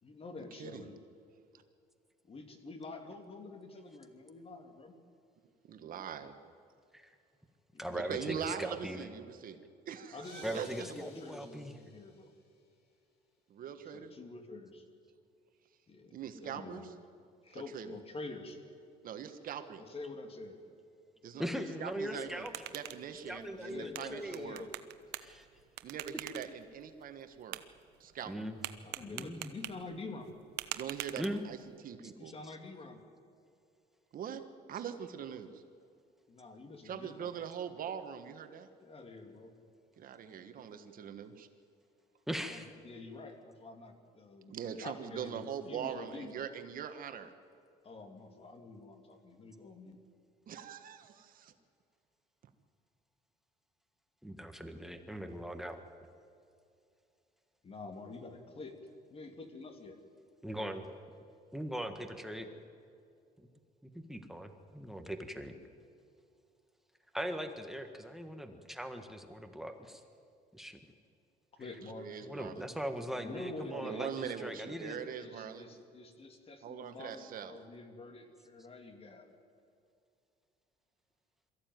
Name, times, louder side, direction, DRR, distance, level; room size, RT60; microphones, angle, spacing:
voice 1, 0.0-1.0 2.2-4.9 7.7-8.6 10.1-12.3 13.8-14.8 15.9-16.9 17.4-18.6 19.8-20.6 23.5-24.7 28.8-30.3 32.1-33.0 36.3-37.3 38.8-39.5 42.4-46.3 47.8-50.0 57.6-58.8 59.1-60.0 71.6-72.2 73.1-74.3 75.2-79.3, left 3 dB, 35° left, 6 dB, 2.7 m, -47 dB
voice 2, 5.6-6.3 7.9-9.6 9.9-10.7 13.5-14.1 16.1-16.9 17.5-17.9 19.0-19.8 21.2-21.4 21.8-22.5 22.7-24.7 25.8-27.6 28.0-28.3 30.7-31.6 31.8-32.3 34.1-35.6 36.8-38.7 40.0-41.5 44.5-47.3 50.5-51.5 71.8-72.7 73.6-75.7 76.6-77.5, right 8 dB, 55° right, 9 dB, 1.5 m, -42 dB
voice 3, 7.8-9.0 10.4-11.7 21.4-22.5 23.3-24.5 25.2-25.5 28.2-28.6 29.1-29.5 31.2-31.4 42.3-42.7 54.2-55.8 60.4-60.8 61.5-62.5 63.4-63.5 63.8-65.5 67.1-70.0 70.5-70.8 72.2-75.0, equal, ahead, 6 dB, 1.6 m, -40 dB
sound 1, 10.2-12.3, left 5 dB, 75° left, 4.5 m, -57 dB
sound 2, 22.1-31.8, right 14 dB, 80° right, 1.0 m, -47 dB
23.0 x 14.5 x 9.3 m, 2.4 s
cardioid pair, 110°, 17 cm